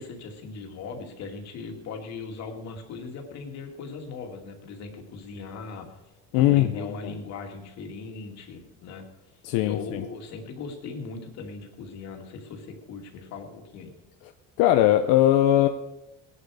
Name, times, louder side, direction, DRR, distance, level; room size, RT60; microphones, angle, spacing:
voice 1, 0.0-6.0 6.4-9.0 9.6-13.9, left 4 dB, 50° left, 3 dB, 2.5 m, -39 dB
voice 2, 6.3-6.9 9.4-10.0 14.6-15.7, left 13 dB, 80° left, 7 dB, 0.9 m, -20 dB
19.5 x 11.0 x 4.9 m, 0.95 s
cardioid pair, 170°, 34 cm